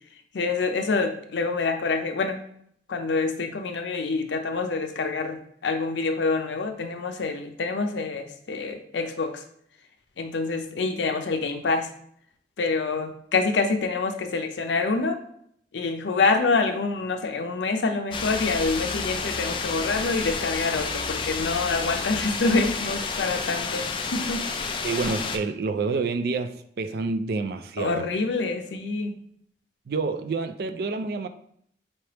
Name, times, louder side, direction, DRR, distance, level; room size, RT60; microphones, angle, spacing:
voice 1, 0.3-2.4 2.9-9.4 10.2-11.9 12.6-15.2 15.7-23.8 24.1-24.4 27.8-29.1, left 3 dB, 90° left, 7 dB, 0.5 m, -26 dB
sound 1, 18.1-25.4, left 4 dB, 30° left, 0.3 m, -30 dB
voice 2, 24.8-28.1 29.9-31.3, right 4 dB, 60° right, 9 dB, 0.3 m, -28 dB
4.4 x 3.2 x 2.9 m, 0.68 s
head